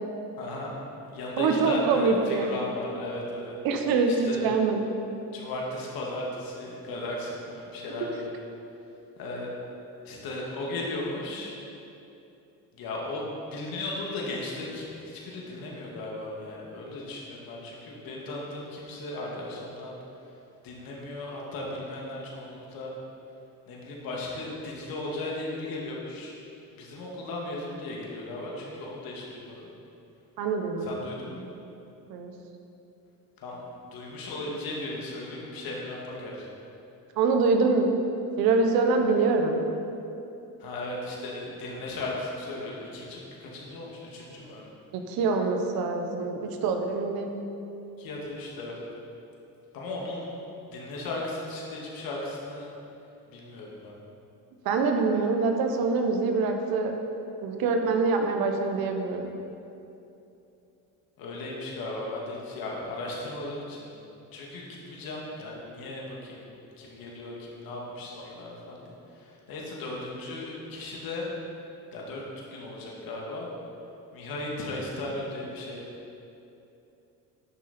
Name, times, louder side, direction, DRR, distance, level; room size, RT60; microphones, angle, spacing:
voice 1, 0.4-0.7 1.1-3.6 4.1-4.4 5.3-8.3 9.2-9.5 10.0-11.5 12.7-19.9 20.6-22.9 23.7-26.4 26.8-29.7 30.8-31.5 33.4-33.6 33.9-36.5 40.6-44.7 48.0-48.8 49.7-50.4 50.6-52.7 53.3-53.9 61.2-63.9 64.3-66.4 66.8-71.3 71.9-72.2 72.5-73.5 74.1-75.8, left 2 dB, 75° left, -3 dB, 2.1 m, -36 dB
voice 2, 1.4-2.5 3.6-4.8 30.4-30.9 32.1-32.3 37.2-37.9 38.4-39.6 44.9-47.4 54.6-56.9 57.4-59.3, right 4 dB, 80° right, 4 dB, 1.1 m, -25 dB
10.5 x 6.7 x 4.3 m, 2.8 s
cardioid pair, 120°, 36 cm